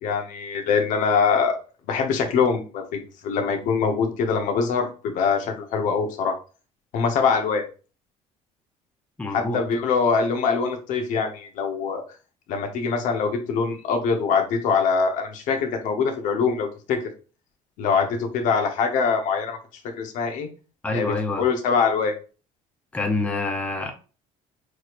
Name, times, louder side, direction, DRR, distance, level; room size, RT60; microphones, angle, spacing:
voice 1, 0.0-1.6 1.9-6.4 6.9-7.6 9.3-12.0 12.5-17.0 17.8-19.6 20.0-20.5 20.9-22.1, left 5 dB, 65° left, 5 dB, 1.0 m, -23 dB
voice 2, 9.2-9.6 20.8-21.4 22.9-23.9, left 2 dB, 10° left, 3 dB, 0.7 m, -26 dB
6.3 x 3.1 x 2.5 m, 0.35 s
cardioid pair, 150°, 14 cm